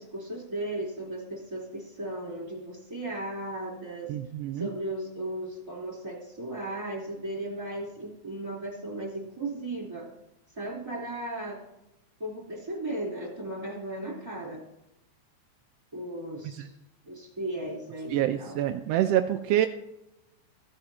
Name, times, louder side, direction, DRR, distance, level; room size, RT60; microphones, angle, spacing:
voice 1, 0.0-4.1 4.5-10.0 10.6-11.6 12.2-14.6 15.9-16.7 17.1-18.6, right 1 dB, 10° right, -2 dB, 3.5 m, -36 dB
voice 2, 4.1-4.7 16.4-16.7 18.1-19.7, right 12 dB, 85° right, 7 dB, 1.4 m, -26 dB
14.0 x 8.9 x 2.9 m, 0.88 s
omnidirectional pair, 3.4 m